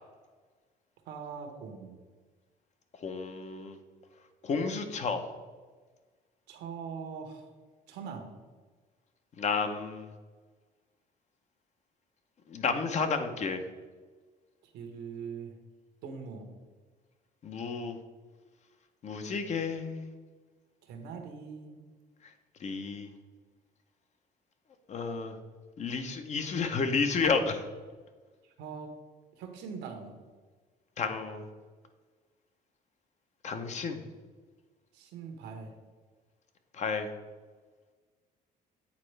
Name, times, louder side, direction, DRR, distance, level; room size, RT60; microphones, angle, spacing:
voice 1, 1.1-2.0 6.5-7.5 7.9-8.3 14.6-15.6 16.0-16.5 20.8-21.9 28.4-28.9 29.4-30.1 34.9-35.7, right 6 dB, 90° right, 5 dB, 1.0 m, -42 dB
voice 2, 3.0-3.8 4.4-5.3 9.4-10.1 12.5-13.6 17.4-18.0 19.0-20.1 22.6-23.1 24.9-25.4 25.8-27.6 31.0-31.5 33.4-34.1 36.7-37.1, left 5 dB, 45° left, 7 dB, 0.7 m, -31 dB
8.4 x 4.2 x 3.3 m, 1.4 s
cardioid pair, 110°, 17 cm